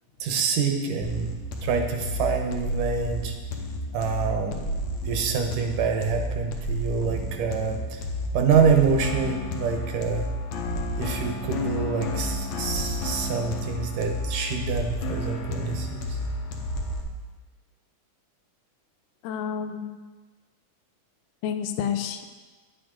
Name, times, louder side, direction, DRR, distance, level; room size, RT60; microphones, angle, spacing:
voice 1, 0.2-1.3 1.6-3.4 3.9-4.6 5.1-8.0 8.3-10.3 11.0-16.2, right 6 dB, 80° right, 3 dB, 2.5 m, -26 dB
sound 1, 1.0-17.0, left 1 dB, 70° left, 1.9 m, -31 dB
voice 2, 19.2-20.0 21.4-22.3, left 8 dB, 85° left, 7 dB, 2.2 m, -29 dB
9.8 x 8.5 x 3.7 m, 1.4 s
omnidirectional pair, 3.7 m